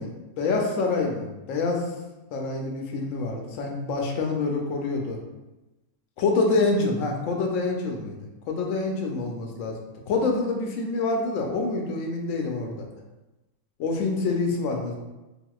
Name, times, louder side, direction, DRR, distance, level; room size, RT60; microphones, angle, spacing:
voice 1, 0.4-1.9 2.3-5.2 6.2-8.2 8.5-9.8 10.1-12.9 13.8-14.9, left 3 dB, 70° left, 1 dB, 0.9 m, -26 dB
3.5 x 2.6 x 2.3 m, 1.0 s
omnidirectional pair, 1.6 m